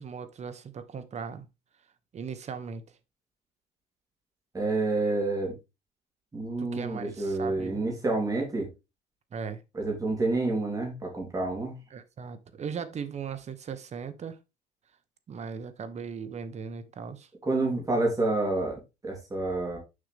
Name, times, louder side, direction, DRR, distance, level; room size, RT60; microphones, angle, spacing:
voice 1, 0.0-1.5 2.1-2.8 6.6-7.8 9.3-9.6 11.9-14.4 15.3-17.3, right 6 dB, 40° right, 1.0 m, -38 dB
voice 2, 4.5-5.5 6.3-8.7 9.7-11.8 17.4-19.8, right 2 dB, 20° right, 3.3 m, -28 dB
6.7 x 5.5 x 3.4 m
cardioid pair, 110°, 17 cm